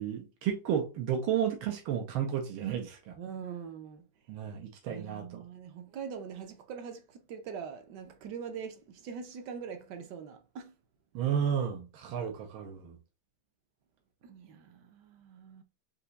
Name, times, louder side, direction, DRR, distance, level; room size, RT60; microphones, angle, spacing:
voice 1, 0.0-3.2 4.3-5.4 11.2-13.0, right 8 dB, 90° right, 1.7 m, -32 dB
voice 2, 3.2-4.0 4.9-10.7 14.2-15.6, right 7 dB, 65° right, 1.2 m, -43 dB
4.7 x 2.8 x 3.9 m
omnidirectional pair, 2.2 m